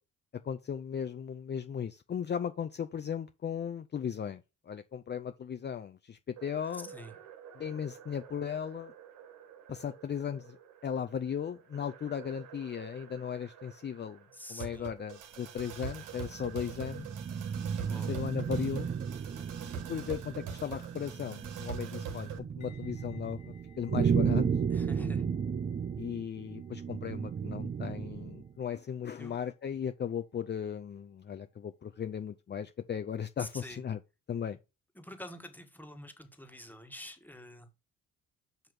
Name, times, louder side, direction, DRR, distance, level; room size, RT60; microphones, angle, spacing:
voice 1, 0.4-6.9 7.6-8.9 9.7-14.2 14.5-17.1 18.1-18.9 19.9-24.5 26.0-34.0 34.3-34.6, left 8 dB, 35° left, 0.6 m, -37 dB
sound 1, 6.4-22.4, right 7 dB, 90° right, 1.6 m, -46 dB
voice 2, 6.7-7.1 14.3-14.9 17.9-18.1 24.7-25.3 29.2-29.4 33.4-33.8 34.9-37.7, equal, 5° left, 1.6 m, -46 dB
sound 2, 15.9-28.5, right 7 dB, 30° right, 0.5 m, -34 dB
sound 3, 22.6-31.6 31.8-32.1, left 11 dB, 75° left, 2.6 m, -66 dB
7.9 x 3.0 x 5.1 m
cardioid pair, 90°, 30 cm